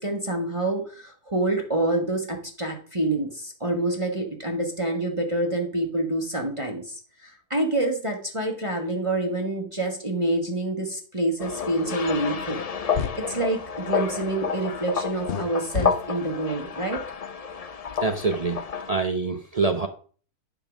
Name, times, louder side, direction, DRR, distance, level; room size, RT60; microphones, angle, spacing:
voice 1, 0.0-12.6 13.2-17.0, right 2 dB, 25° right, 1 dB, 1.1 m, -27 dB
sound 1, 11.4-18.9, left 6 dB, 75° left, 0.3 m, -30 dB
sound 2, 12.5-12.6 12.9-13.2 15.3-15.4 15.7-15.9, left 7 dB, 50° left, 0.7 m, -28 dB
voice 2, 18.0-19.9, right 3 dB, 70° right, 6 dB, 0.3 m, -25 dB
11.0 x 3.9 x 5.9 m, 0.43 s
omnidirectional pair, 1.6 m